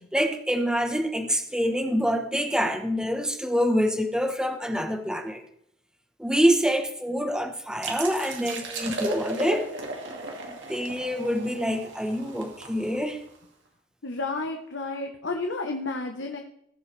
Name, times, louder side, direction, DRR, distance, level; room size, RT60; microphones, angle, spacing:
voice 1, 0.1-5.4 6.2-9.7 10.4-13.2, equal, 5° right, 1.2 m, -26 dB
sound 1, 7.8-13.4, right 2 dB, 70° right, 2.4 m, -35 dB
voice 2, 14.0-16.4, left 3 dB, 75° left, 1.2 m, -31 dB
20.0 x 7.8 x 3.4 m
head